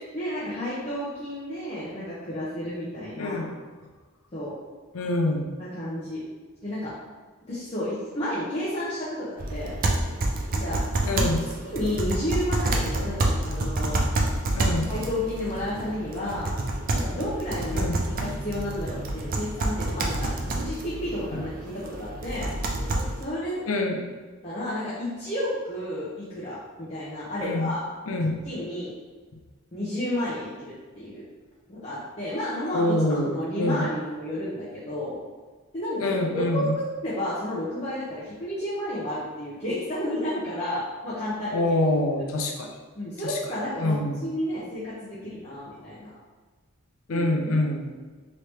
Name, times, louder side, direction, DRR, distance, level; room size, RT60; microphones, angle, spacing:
voice 1, 0.1-3.4 4.3-4.6 5.6-6.2 6.6-6.9 7.5-9.7 10.5-10.8 11.1-11.3 11.6-14.0 14.6-16.5 16.9-22.5 22.8-22.9 23.2-23.6 24.4-27.8 28.4-28.9 29.7-31.3 31.7-35.2 35.7-36.7 37.0-41.6 43.0-46.1 47.1-47.3, left 1 dB, 30° left, -10 dB, 0.7 m, -31 dB
voice 2, 3.2-3.5 4.9-5.4 11.1-11.4 14.5-14.9 17.7-18.0 21.3-21.4 23.7-24.0 27.4-27.7 28.1-28.4 32.7-33.3 33.6-33.9 36.0-36.8 41.5-42.7 43.8-44.2 47.1-47.9, left 1 dB, 70° left, 2 dB, 0.5 m, -25 dB
sound 1, 9.4-23.2, right 2 dB, 40° right, 0.4 m, -28 dB
3.0 x 2.8 x 3.3 m, 1.4 s
head